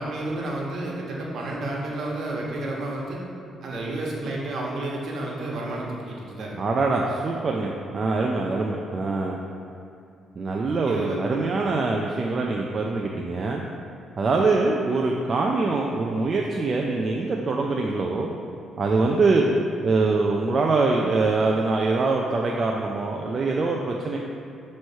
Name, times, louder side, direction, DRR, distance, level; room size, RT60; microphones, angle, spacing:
voice 1, 0.0-3.2 3.6-6.6 10.9-11.4, right 2 dB, 60° right, -3 dB, 1.2 m, -31 dB
voice 2, 6.6-9.4 10.4-13.6 14.2-18.3 18.8-19.5 19.8-24.2, right 3 dB, 40° right, -1 dB, 0.5 m, -24 dB
6.1 x 3.2 x 5.5 m, 2.5 s
cardioid pair, 90°, 0 cm